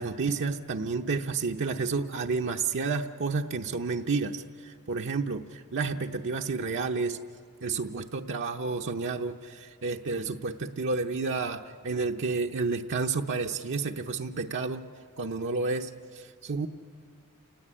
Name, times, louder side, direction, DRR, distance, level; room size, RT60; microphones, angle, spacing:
voice 1, 0.0-7.2 7.6-14.8 15.2-16.7, right 4 dB, 55° right, 2 dB, 0.7 m, -30 dB
29.5 x 17.5 x 9.9 m, 2.1 s
head